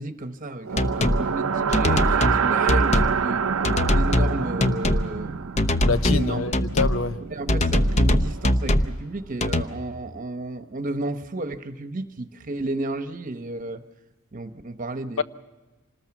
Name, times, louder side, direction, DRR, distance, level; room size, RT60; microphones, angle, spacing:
voice 1, 0.0-3.4 3.8-5.7 6.0-6.4 7.3-13.8 14.3-15.2, right 2 dB, 40° right, 9 dB, 1.0 m, -32 dB
sound 1, 0.6-8.7, right 6 dB, 80° right, 0.6 m, -27 dB
sound 2, 0.8-1.2 1.7-2.4 2.7-3.2 3.6-4.3 4.6-5.1 5.6-6.2 6.5-7.0 7.5-8.9 9.4-9.6, left 1 dB, 30° left, 0.8 m, -21 dB
voice 2, 5.9-7.2 15.2-15.3, left 4 dB, 70° left, 12 dB, 0.8 m, -25 dB
26.5 x 20.0 x 6.0 m, 1.1 s
head